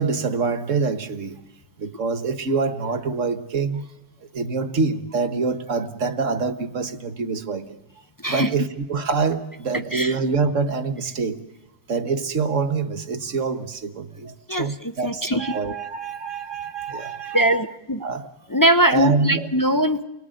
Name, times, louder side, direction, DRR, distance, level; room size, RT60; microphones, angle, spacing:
voice 1, 0.0-1.4 1.8-3.8 4.3-7.6 8.3-11.4 11.9-17.6 18.0-18.2 18.9-19.5, right 4 dB, 45° right, 9 dB, 1.7 m, -25 dB
voice 2, 15.0-15.5 17.3-18.0 18.5-20.0, right 1 dB, 25° left, 8 dB, 0.4 m, -21 dB
30.0 x 19.5 x 9.2 m, 1.0 s
omnidirectional pair, 1.9 m